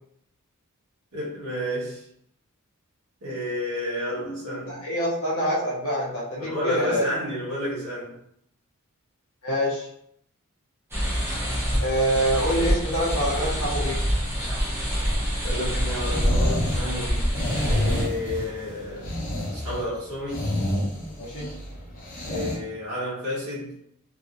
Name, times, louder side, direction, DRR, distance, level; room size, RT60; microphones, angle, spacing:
voice 1, 1.1-2.1 3.2-4.8 6.4-8.1 15.2-19.1 19.5-20.5 22.2-23.7, left 1 dB, 80° right, -8 dB, 1.3 m, -31 dB
voice 2, 4.7-7.1 9.4-9.9 11.8-14.0 21.2-21.5, equal, 70° left, -6 dB, 0.7 m, -25 dB
sound 1, 10.9-18.0, equal, 10° right, 0.8 m, -26 dB
sound 2, 15.9-22.6, left 1 dB, 40° left, 0.9 m, -29 dB
3.0 x 2.8 x 2.6 m, 0.73 s
head